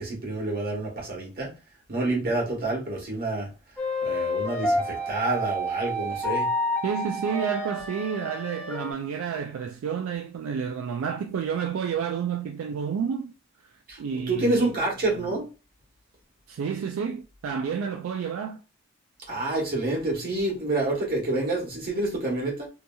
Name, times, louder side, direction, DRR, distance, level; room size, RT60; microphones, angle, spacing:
voice 1, 0.0-1.5 1.9-3.5 4.0-6.5 13.9-14.0 14.3-15.5 19.3-22.7, right 2 dB, 45° right, 1.2 m, -28 dB
sound 1, 3.8-8.9, left 1 dB, 10° left, 0.4 m, -29 dB
voice 2, 6.8-13.3 14.0-14.7 16.5-18.6, right 7 dB, 85° right, 0.3 m, -30 dB
2.8 x 2.6 x 2.3 m
head